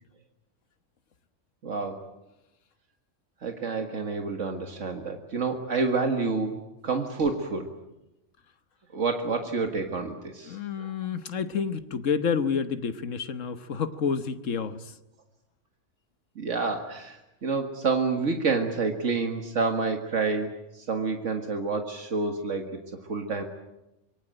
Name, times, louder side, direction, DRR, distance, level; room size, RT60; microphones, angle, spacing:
voice 1, 1.6-2.0 3.4-7.7 8.9-10.9 16.4-22.8 23.1-23.4, right 4 dB, 80° right, 5 dB, 2.1 m, -28 dB
voice 2, 10.5-14.8, left 6 dB, 85° left, 11 dB, 1.5 m, -29 dB
25.5 x 22.5 x 9.0 m, 0.93 s
omnidirectional pair, 1.3 m